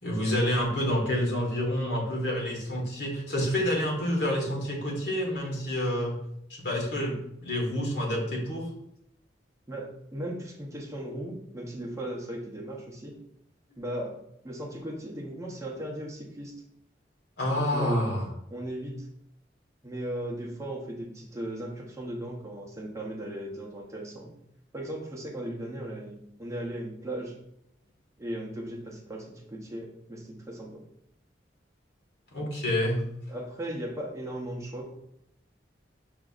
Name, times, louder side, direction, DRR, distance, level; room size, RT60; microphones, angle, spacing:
voice 1, 0.0-6.1 6.5-8.7 17.4-18.3 32.3-33.0, equal, 80° left, -2 dB, 1.2 m, -28 dB
voice 2, 9.7-13.2 13.8-16.5 17.7-18.2 18.5-19.1 19.8-24.3 24.7-27.4 28.2-30.8 33.3-34.9, right 1 dB, 15° right, -1 dB, 0.7 m, -37 dB
6.1 x 2.6 x 2.4 m, 0.76 s
head